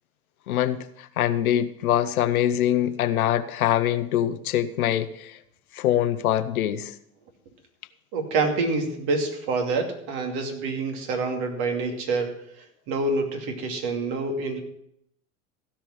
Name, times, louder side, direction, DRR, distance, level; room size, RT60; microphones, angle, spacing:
voice 1, 0.5-5.4 5.7-6.9, left 11 dB, 80° left, 12 dB, 0.9 m, -24 dB
voice 2, 8.1-12.4 12.9-14.6, right 3 dB, 55° right, 3 dB, 2.6 m, -27 dB
15.5 x 5.9 x 6.4 m, 0.73 s
hypercardioid pair, 90°, 42 cm